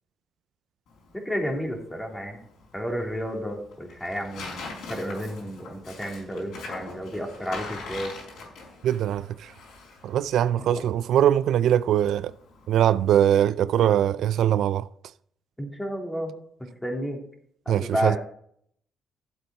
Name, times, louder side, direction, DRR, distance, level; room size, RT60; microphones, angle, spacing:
Tearing, 0.9-13.1, left 3 dB, 80° left, 5.1 m, -43 dB
voice 1, 1.1-2.4 2.7-8.1 10.6-10.8 15.6-16.3 16.8-17.2 17.6-18.2, equal, 10° left, 3.1 m, -31 dB
voice 2, 8.8-9.5 10.0-12.3 12.7-14.9 17.7-18.2, right 10 dB, 75° right, 0.4 m, -22 dB
12.0 x 7.8 x 4.4 m
cardioid pair, 90°, 0 cm